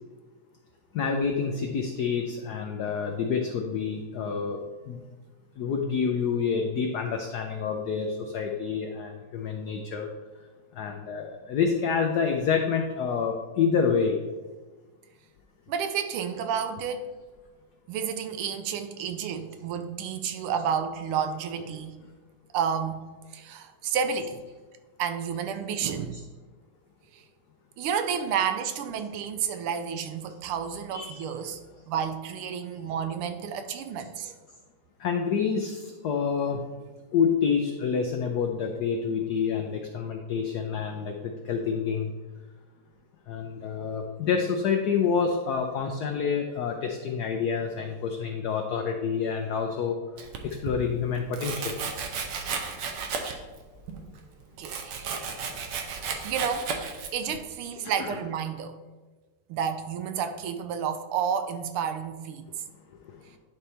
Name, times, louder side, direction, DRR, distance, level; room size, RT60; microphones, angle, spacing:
voice 1, 0.9-4.6 4.9-5.0 5.6-10.1 10.8-14.2 26.1-26.2 30.9-31.3 35.0-36.6 37.1-42.1 43.3-49.9 50.4-51.8 57.3-57.4 58.0-58.2, left 6 dB, 80° left, 3 dB, 0.9 m, -28 dB
voice 2, 15.7-17.0 17.9-21.9 22.5-24.4 25.0-26.2 27.1-27.2 27.8-31.6 31.9-34.4 54.6-55.3 56.2-56.7 57.1-58.8 59.5-62.5, right 7 dB, 85° right, 8 dB, 1.6 m, -31 dB
Domestic sounds home sounds, 50.2-50.8 51.3-53.6 53.9-57.4, right 5 dB, 65° right, 1.3 m, -34 dB
10.5 x 4.2 x 3.3 m, 1.3 s
omnidirectional pair, 2.4 m